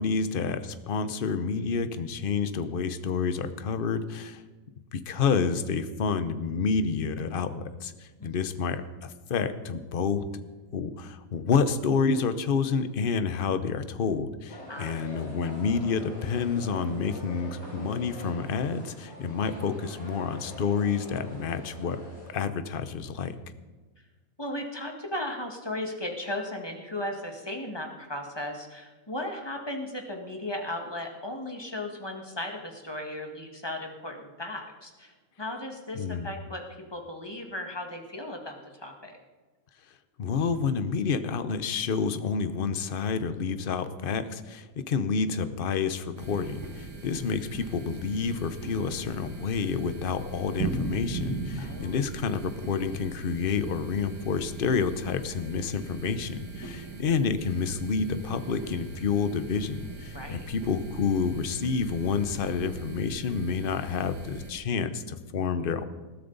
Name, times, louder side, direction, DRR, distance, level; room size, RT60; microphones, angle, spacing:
voice 1, 0.0-4.4 4.9-10.2 10.7-22.0 22.3-23.4 36.0-36.3 40.2-65.8, left 5 dB, 45° left, 11 dB, 0.9 m, -29 dB
voice 2, 8.2-8.6 14.7-15.0 24.4-36.6 36.9-39.2 51.6-51.9 60.1-60.5, left 1 dB, 15° left, 2 dB, 1.8 m, -36 dB
sound 1, 14.5-22.3, left 1 dB, 60° left, 5.3 m, -44 dB
sound 2, 46.2-64.5, right 3 dB, 85° right, 2.4 m, -39 dB
20.5 x 13.5 x 4.0 m, 1.3 s
omnidirectional pair, 1.5 m